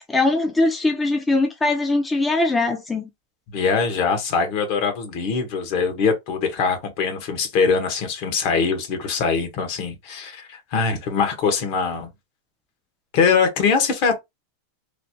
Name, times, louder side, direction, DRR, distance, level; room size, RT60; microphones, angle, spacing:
voice 1, 0.1-3.1, left 2 dB, 15° left, 0.5 m, -21 dB
voice 2, 3.5-12.1 13.1-14.2, left 5 dB, 55° left, 1.0 m, -22 dB
3.1 x 2.0 x 2.7 m
hypercardioid pair, 110°, 0 cm